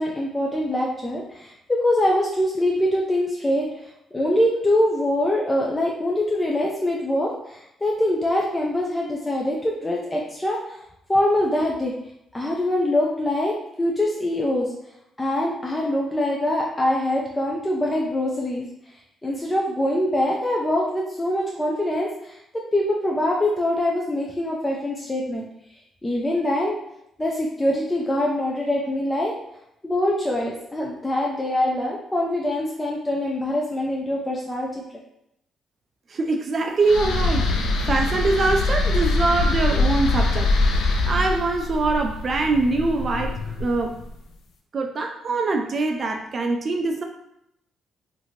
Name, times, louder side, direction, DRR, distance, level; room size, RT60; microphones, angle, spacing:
voice 1, 0.0-3.7 4.1-10.8 11.1-11.9 12.3-14.7 15.2-18.7 19.2-22.4 22.7-25.5 26.0-26.8 27.2-29.3 29.8-34.8, left 1 dB, 15° left, -3 dB, 0.5 m, -24 dB
voice 2, 36.1-37.5 37.9-40.5 41.1-43.9 44.7-47.0, right 3 dB, 45° right, 3 dB, 0.3 m, -23 dB
sound 1, 36.8-44.0, left 2 dB, 75° left, 0.4 m, -23 dB
2.9 x 2.6 x 2.7 m, 0.77 s
cardioid pair, 90°, 0 cm